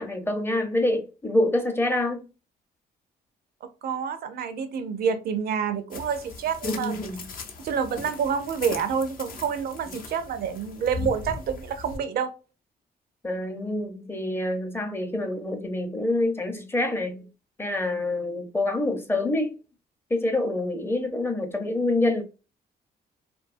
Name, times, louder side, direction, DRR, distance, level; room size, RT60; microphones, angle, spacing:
voice 1, 0.0-2.2 6.6-7.3 13.2-17.3 17.6-19.6 20.1-22.2, left 2 dB, 15° left, 0.6 m, -26 dB
voice 2, 3.6-7.0 7.6-12.3, right 7 dB, 65° right, 0.4 m, -28 dB
sound 1, 5.9-12.0, left 4 dB, 55° left, 0.6 m, -39 dB
2.6 x 2.3 x 2.4 m
cardioid pair, 90°, 17 cm